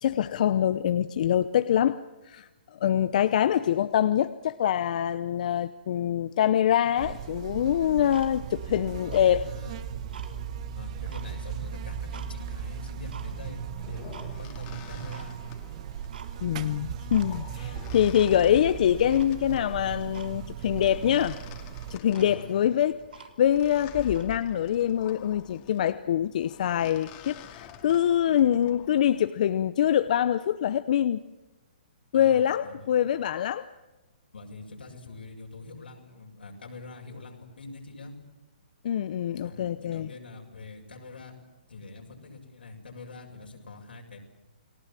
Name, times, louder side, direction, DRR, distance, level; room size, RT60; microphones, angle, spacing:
voice 1, 0.0-2.0 2.2-2.5 2.8-9.5 16.4-21.4 21.9-31.2 32.1-33.7 38.8-40.1, left 10 dB, 50° left, 13 dB, 0.8 m, -24 dB
Buzz, 7.0-22.0, right 8 dB, 40° right, 1.3 m, -37 dB
Tick-tock, 8.1-8.7 9.0-10.3 10.8-12.3 12.7-13.3 13.8-14.3 14.6-14.7 15.1-15.3 15.7-15.8 16.1-16.6 16.9-17.5 17.8-18.6 19.1-19.7 20.1-20.3 20.7-20.8 21.1-21.3 21.8-21.9 22.1-23.6 24.1-24.3, right 6 dB, 75° right, 3.5 m, -47 dB
voice 2, 9.2-9.9 10.7-15.4 17.2-17.8 18.4-18.6 22.1-22.5 32.1-32.9 34.3-38.2 39.4-41.4 41.7-44.2, left 3 dB, 90° left, 1 dB, 7.2 m, -45 dB
sound 1, 13.4-29.2, left 9 dB, 30° left, 2.5 m, -48 dB
30.0 x 19.5 x 7.5 m, 1.1 s
hypercardioid pair, 150°, 5 cm